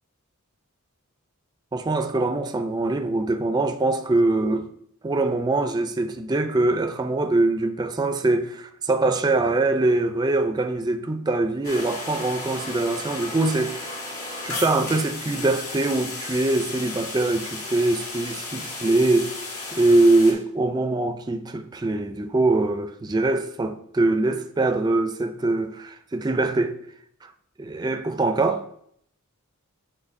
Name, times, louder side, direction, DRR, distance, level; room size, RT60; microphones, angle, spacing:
voice 1, 1.7-4.7 5.0-13.9 14.4-19.3 19.7-26.8 27.6-28.6, right 2 dB, 20° right, 0.4 m, -23 dB
sound 1, 11.6-20.3, left 2 dB, 75° left, 1.8 m, -34 dB
9.5 x 3.9 x 2.6 m
head